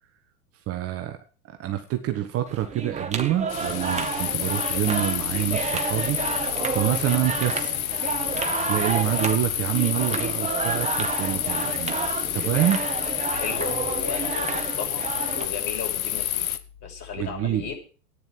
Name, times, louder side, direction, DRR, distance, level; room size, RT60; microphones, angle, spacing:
voice 1, 0.7-1.2 1.4-6.2 6.7-7.8 8.7-12.8 17.1-17.7, right 13 dB, 30° right, 6 dB, 1.5 m, -27 dB
sound 1, 2.5-15.5, right 5 dB, 15° right, 1.6 m, -30 dB
sound 2, 3.5-16.6, left 11 dB, 60° left, 1.4 m, -29 dB
voice 2, 13.3-15.1 15.3-16.5 16.8-17.7, left 7 dB, 30° left, 1 dB, 5.8 m, -35 dB
14.0 x 9.8 x 6.1 m, 0.38 s
figure-of-eight pair, 95°, 46 cm